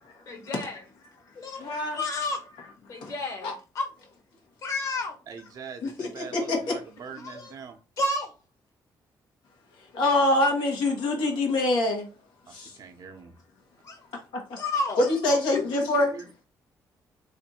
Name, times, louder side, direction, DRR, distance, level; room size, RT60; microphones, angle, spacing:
voice 1, 0.3-0.8 1.4-1.6 1.9-2.4 2.9-3.9 4.6-5.2 5.8-6.1 7.2-7.5 8.0-8.3 13.8-14.1 14.6-15.1 15.5-15.9, left 2 dB, 45° left, 1.2 m, -31 dB
voice 2, 1.6-2.0 3.0-3.1 3.4-3.5 5.8-6.8 9.9-12.1 12.5-12.7 14.3-14.6 15.0-16.1, left 2 dB, 90° left, 1.4 m, -25 dB
voice 3, 5.3-7.8 12.6-13.3 15.5-15.7 16.1-16.3, right 6 dB, 55° right, 0.7 m, -43 dB
3.2 x 2.6 x 4.2 m
cardioid pair, 130°, 8 cm